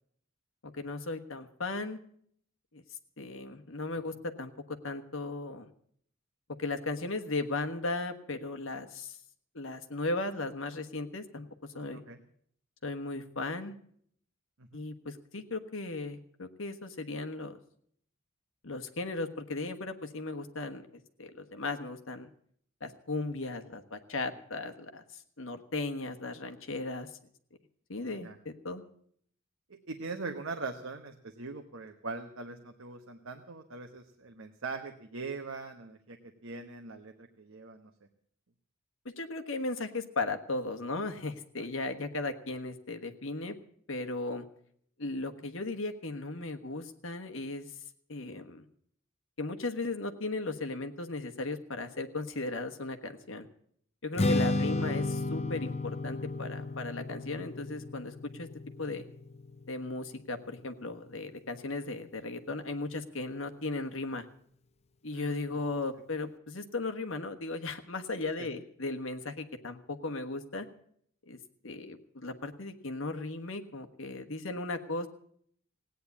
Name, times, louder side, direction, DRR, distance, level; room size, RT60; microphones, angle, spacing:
voice 1, 0.6-2.0 2.7-2.8 3.2-5.7 6.6-9.2 9.5-11.5 11.7-12.0 12.8-13.7 14.7-17.6 18.6-22.3 22.8-27.1 27.9-28.8 39.2-43.5 43.9-44.4 45.0-47.7 48.1-48.7 49.4-53.5 54.0-58.5 58.8-59.1 59.7-64.2 65.0-70.7 71.3-71.4 71.6-75.1, left 2 dB, 65° left, 6 dB, 1.4 m, -36 dB
voice 2, 29.7-37.9 41.6-41.7 65.1-65.5 68.4-68.5, right 3 dB, 70° right, 6 dB, 1.1 m, -41 dB
Strum, 54.2-60.5, left 2 dB, 30° left, 0.6 m, -33 dB
17.0 x 9.5 x 8.4 m, 0.64 s
head